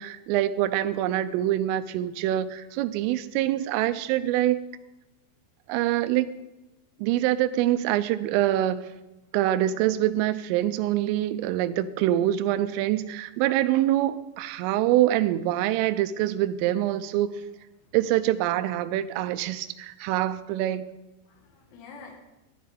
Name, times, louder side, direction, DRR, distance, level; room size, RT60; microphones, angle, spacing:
voice 1, 0.0-4.6 5.7-6.3 7.0-8.8 9.3-17.3 17.9-20.9, right 13 dB, 85° right, 10 dB, 3.1 m, -25 dB
voice 2, 2.7-3.2 3.6-3.8 17.6-18.0 20.0-20.2 21.2-22.2, left 4 dB, 65° left, 1 dB, 3.7 m, -50 dB
15.0 x 10.5 x 3.7 m, 1.0 s
omnidirectional pair, 6.0 m